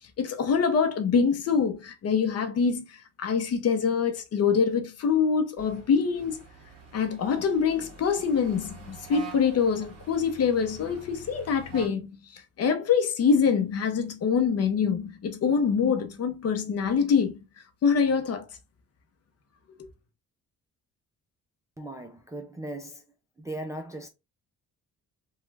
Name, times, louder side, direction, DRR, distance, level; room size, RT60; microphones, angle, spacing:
voice 1, 0.2-6.4 6.9-17.4 17.8-18.4 19.8-19.9, left 6 dB, 50° left, 0.7 m, -25 dB
sound 1, 5.6-11.9, right 3 dB, 50° right, 1.5 m, -46 dB
voice 2, 21.8-23.0 23.4-24.1, right 1 dB, 10° right, 0.3 m, -38 dB
3.1 x 2.3 x 3.2 m
cardioid pair, 170°, 32 cm